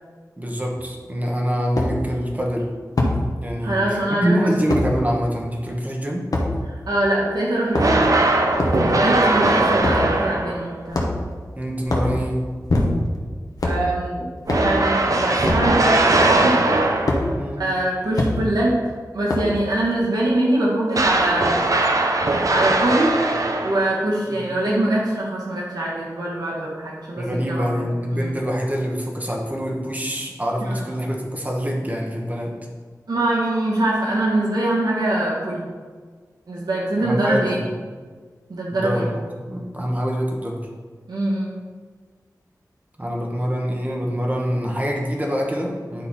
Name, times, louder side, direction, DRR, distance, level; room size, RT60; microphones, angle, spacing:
voice 1, 0.4-2.7 3.4-6.2 11.6-12.4 17.4-17.6 24.3-24.4 27.2-32.5 37.0-37.5 38.7-40.7 43.0-46.1, equal, 25° right, 0 dB, 1.4 m, -25 dB
sound 1, 0.8-0.9 1.8-1.9 3.0-3.2 4.7-4.9 6.3-6.5 7.6-8.1 8.6-8.8 9.8-10.1 10.9-11.3 11.8-12.1 12.7-13.2 13.6-13.8 14.5-14.7 15.4-15.7 17.1-17.2 18.1-18.3 19.3-19.6, left 2 dB, 70° left, 1.3 m, -22 dB
voice 2, 3.6-4.5 6.7-8.2 8.8-11.0 13.6-14.2 14.6-16.6 17.6-18.8 19.1-22.1 22.5-23.2 23.6-28.3 30.6-30.9 33.1-35.7 36.5-37.6 38.5-39.1 41.1-41.6, right 1 dB, 85° right, -5 dB, 1.6 m, -23 dB
sound 2, 7.7-10.7 14.5-17.4 20.9-24.0, right 2 dB, 60° right, 0.7 m, -20 dB
10.0 x 4.0 x 4.2 m, 1.5 s
wide cardioid pair, 80°, 7 cm